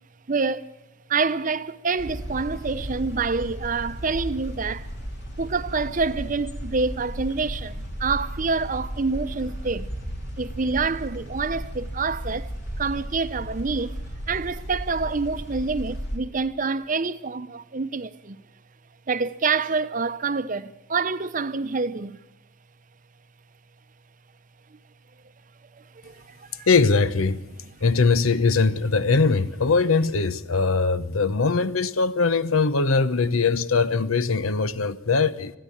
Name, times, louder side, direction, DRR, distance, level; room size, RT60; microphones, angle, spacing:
voice 1, 0.3-0.7 1.1-4.9 5.4-9.9 10.4-12.5 12.8-14.0 14.3-18.4 19.1-22.2 24.7-24.8 25.7-26.7, right 4 dB, 40° right, 0.7 m, -27 dB
sound 1, 2.0-16.2, equal, 55° left, 3.0 m, -35 dB
voice 2, 26.7-27.4 27.8-35.5, left 4 dB, 85° left, 0.9 m, -21 dB
22.0 x 15.0 x 8.6 m
head